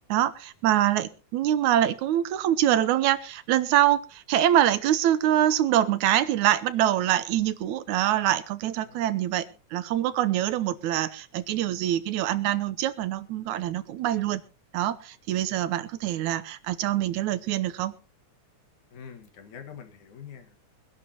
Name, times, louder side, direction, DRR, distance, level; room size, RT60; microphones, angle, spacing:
voice 1, 0.1-9.5 9.7-14.4 14.7-18.0, right 12 dB, 80° right, 14 dB, 2.2 m, -24 dB
voice 2, 8.7-9.6 10.6-10.8 18.9-20.6, left 7 dB, 80° left, 6 dB, 3.1 m, -46 dB
23.5 x 11.0 x 2.9 m, 0.33 s
omnidirectional pair, 3.4 m